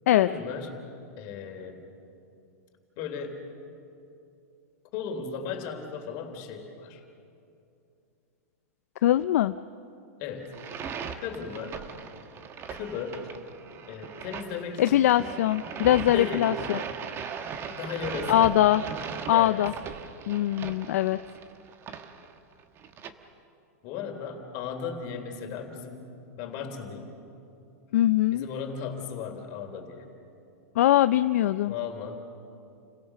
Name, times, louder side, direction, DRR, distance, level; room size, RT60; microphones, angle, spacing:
voice 1, 0.1-0.7 1.2-1.8 3.0-3.4 4.9-7.0 10.2-10.5 11.2-11.8 12.7-13.3 13.9-15.1 16.1-16.5 17.7-18.6 19.3-19.6 23.8-27.2 28.3-30.0 31.7-32.2, left 6 dB, 45° left, 4 dB, 3.3 m, -36 dB
voice 2, 9.0-9.5 14.8-16.8 18.3-18.8 19.3-19.7 20.3-21.2 27.9-28.4 30.8-31.7, left 13 dB, 70° left, 12 dB, 0.4 m, -22 dB
sound 1, 10.5-23.1, right 6 dB, 30° right, 1.3 m, -39 dB
29.5 x 16.5 x 6.8 m, 2.6 s
hypercardioid pair, 130°, 8 cm